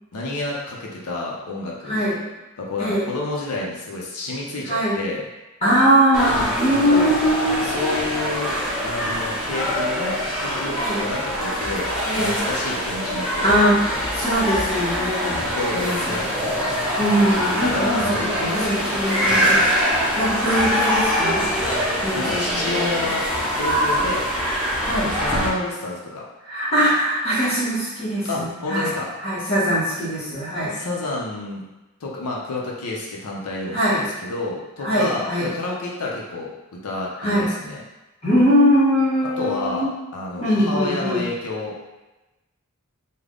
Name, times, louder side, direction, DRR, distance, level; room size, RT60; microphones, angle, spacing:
voice 1, 0.1-2.0 2.6-5.2 6.7-7.3 7.6-8.5 8.8-14.0 15.4-16.7 17.6-19.6 21.8-23.2 23.6-24.3 24.9-26.2 28.2-29.1 30.7-31.7 32.0-37.8 39.4-41.8, left 2 dB, 85° left, -3 dB, 0.6 m, -30 dB
voice 2, 1.8-2.3 2.8-3.1 4.7-5.0 5.6-7.6 10.8-11.0 12.1-12.4 13.4-15.4 15.7-16.1 17.0-18.1 18.4-19.6 20.1-21.5 22.0-22.9 24.8-25.1 26.4-28.9 29.2-30.8 33.7-34.1 34.8-35.5 37.2-37.5 38.2-39.9 40.4-41.2, equal, 30° left, -10 dB, 1.0 m, -21 dB
sound 1, 6.1-25.5, equal, 5° right, 0.7 m, -24 dB
3.4 x 2.1 x 3.7 m, 1.1 s
head